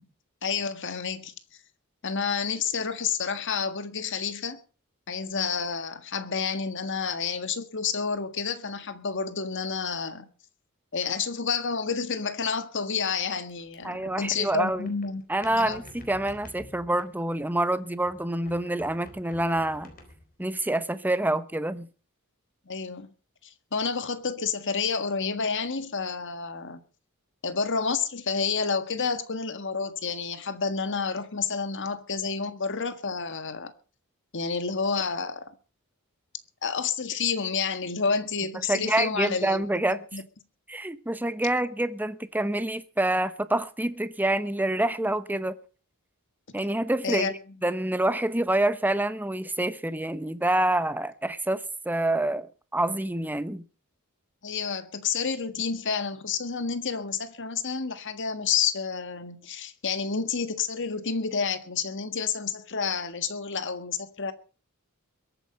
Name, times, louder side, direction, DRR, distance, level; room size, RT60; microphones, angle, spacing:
voice 1, 0.4-1.3 2.0-4.6 5.1-10.3 10.9-15.2 15.6-15.8 22.7-23.1 23.7-26.8 27.4-33.7 34.3-35.5 36.6-40.2 47.0-47.3 54.4-64.3, left 5 dB, 60° left, 1.7 m, -29 dB
sound 1, 13.5-17.7 18.0-20.4, left 1 dB, 40° left, 4.1 m, -49 dB
voice 2, 13.8-14.9 15.3-19.9 20.4-21.9 38.7-40.0 40.7-45.6 46.5-47.3 47.6-52.5 52.7-53.6, right 1 dB, 10° right, 0.9 m, -27 dB
22.0 x 9.1 x 5.5 m
head